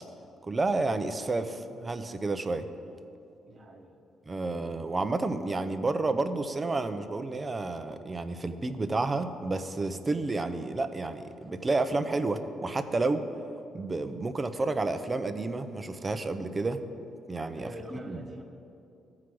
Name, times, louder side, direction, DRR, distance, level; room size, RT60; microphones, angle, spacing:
voice 1, 0.5-2.6 4.3-13.3 13.7-16.8 17.3-18.2, right 3 dB, 25° right, 9 dB, 0.6 m, -30 dB
voice 2, 3.5-4.0 17.6-18.4, equal, 50° right, -1 dB, 1.0 m, -44 dB
14.0 x 4.8 x 6.0 m, 2.6 s
cardioid pair, 90°, 0 cm